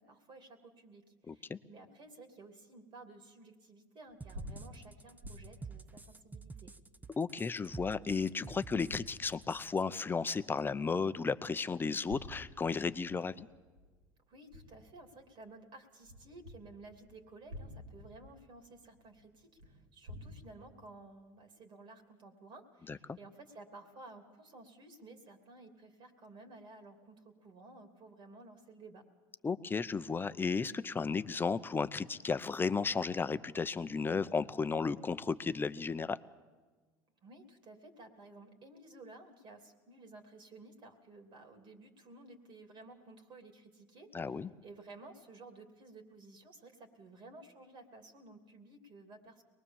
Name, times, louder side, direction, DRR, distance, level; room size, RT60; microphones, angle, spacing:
voice 1, 0.0-6.7 14.3-29.0 37.2-49.4, right 2 dB, 50° right, 5 dB, 3.1 m, -54 dB
voice 2, 1.3-1.6 7.2-13.5 22.9-23.2 29.4-36.2 44.1-44.5, left 5 dB, 20° left, 13 dB, 0.8 m, -34 dB
sound 1, 4.1-8.2 8.7-10.1 10.5-10.6 11.8-15.5 16.0-20.3, left 1 dB, 85° right, 4.6 m, -51 dB
sound 2, 4.2-9.8, right 4 dB, 15° right, 0.9 m, -49 dB
23.5 x 20.0 x 7.3 m, 1.3 s
supercardioid pair, 95°, 10 cm